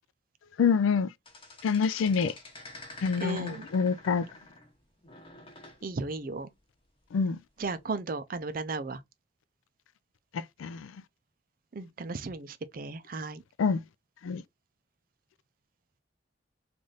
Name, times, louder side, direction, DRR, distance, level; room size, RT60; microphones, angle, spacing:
voice 1, 0.6-1.1 1.6-2.3 3.0-4.3 7.1-7.4 10.6-10.9 13.6-13.8 14.2-14.4, left 5 dB, 85° left, 0.4 m, -26 dB
sound 1, 1.3-4.7 5.0-5.8 7.6-7.8, left 2 dB, 25° left, 0.9 m, -48 dB
voice 2, 3.2-3.6 5.8-6.5 7.6-9.0 11.7-13.4, right 3 dB, 45° right, 0.5 m, -35 dB
3.3 x 2.5 x 3.8 m
head